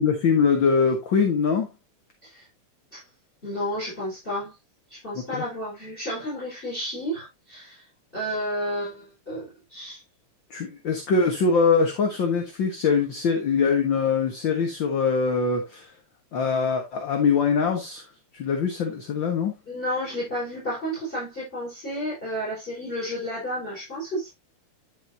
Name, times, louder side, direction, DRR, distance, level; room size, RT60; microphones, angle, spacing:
voice 1, 0.0-1.7 5.3-5.4 10.5-15.9 16.3-18.0 18.3-19.5, left 5 dB, 45° left, 1.8 m, -23 dB
voice 2, 3.4-4.5 4.9-7.8 8.1-10.0 19.7-24.3, equal, 15° left, 5.2 m, -31 dB
11.0 x 5.8 x 2.8 m
omnidirectional pair, 3.4 m